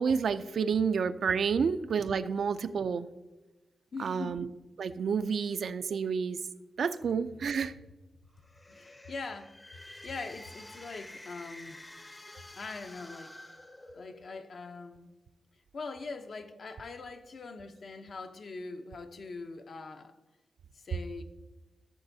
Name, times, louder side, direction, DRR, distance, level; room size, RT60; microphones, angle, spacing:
voice 1, 0.0-3.1 4.0-4.5 4.8-6.4 6.8-7.7, right 6 dB, 65° right, 11 dB, 0.4 m, -29 dB
voice 2, 3.9-4.5 8.7-9.5 10.0-11.8 12.5-13.3 13.8-15.1 15.7-20.2 20.7-21.2, left 3 dB, 55° left, 7 dB, 0.7 m, -42 dB
sound 1, 8.3-14.4, left 1 dB, 20° left, 0.7 m, -49 dB
14.5 x 6.9 x 2.7 m, 1.1 s
wide cardioid pair, 120°, 0 cm